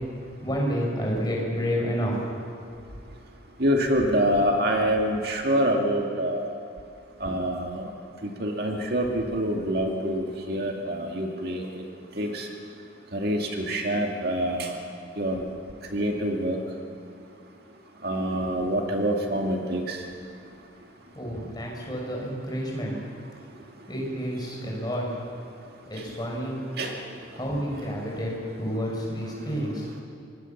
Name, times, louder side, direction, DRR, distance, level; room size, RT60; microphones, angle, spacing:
voice 1, 0.4-2.4 21.1-22.9 23.9-25.1 25.9-26.6 27.3-28.3 28.6-29.9, equal, 20° left, -2 dB, 6.2 m, -29 dB
voice 2, 3.6-6.5 7.2-7.9 8.2-11.7 12.2-12.5 13.1-14.7 15.2-15.4 15.9-16.6 18.0-20.0 26.8-27.0, equal, 50° right, 1 dB, 2.2 m, -26 dB
26.0 x 20.5 x 7.3 m, 2.5 s
head